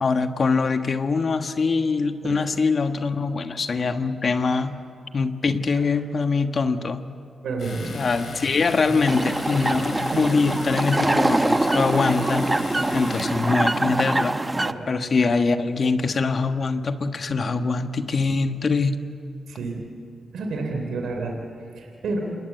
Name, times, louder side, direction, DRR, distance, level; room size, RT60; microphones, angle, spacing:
voice 1, 0.0-4.8 5.1-7.0 7.9-12.5 12.9-14.4 14.9-18.9, left 4 dB, 55° left, 8 dB, 1.4 m, -23 dB
voice 2, 7.4-8.3 8.9-9.0 9.6-9.8 10.1-10.2 14.6-14.9 19.5-19.9 20.3-22.2, right 3 dB, 85° right, 2 dB, 3.2 m, -30 dB
Domestic sounds home sounds, 7.6-13.5, left 5 dB, 70° left, 6.6 m, -38 dB
sound 1, 9.1-14.7, right 2 dB, 20° right, 0.9 m, -24 dB
27.5 x 20.5 x 8.1 m, 2.5 s
cardioid pair, 65°, 0 cm